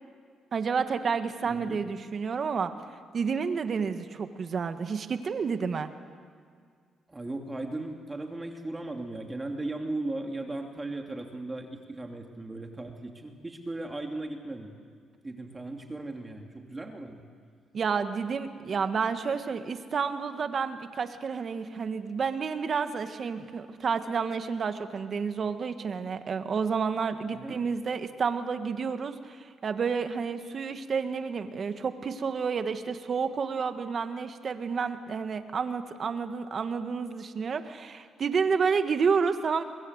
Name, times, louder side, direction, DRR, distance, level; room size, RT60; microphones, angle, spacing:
voice 1, 0.5-2.7 3.1-5.9 17.7-39.6, right 5 dB, 50° right, 9 dB, 1.7 m, -30 dB
voice 2, 1.4-1.8 7.1-14.7 15.2-17.2 27.3-27.6, right 2 dB, 20° right, 3 dB, 2.7 m, -37 dB
24.5 x 21.5 x 8.1 m, 2.1 s
cardioid pair, 90°, 0 cm